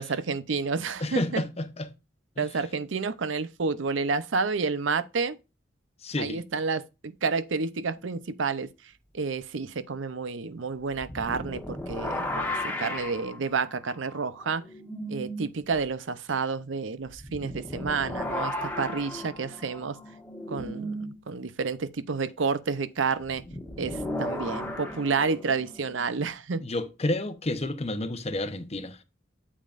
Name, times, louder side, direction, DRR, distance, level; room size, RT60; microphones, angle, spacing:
voice 1, 0.0-1.4 2.4-5.4 6.2-8.7 9.1-14.6 15.1-20.0 20.5-23.4 23.8-26.6, right 4 dB, 80° right, 0.6 m, -30 dB
voice 2, 1.0-1.9 2.4-2.5 6.0-6.4 26.6-29.0, left 1 dB, 35° left, 0.9 m, -30 dB
sound 1, 10.9-15.4 15.8-15.9 17.1-21.2 23.2-26.1, left 1 dB, 10° left, 1.5 m, -35 dB
8.5 x 7.5 x 2.5 m
head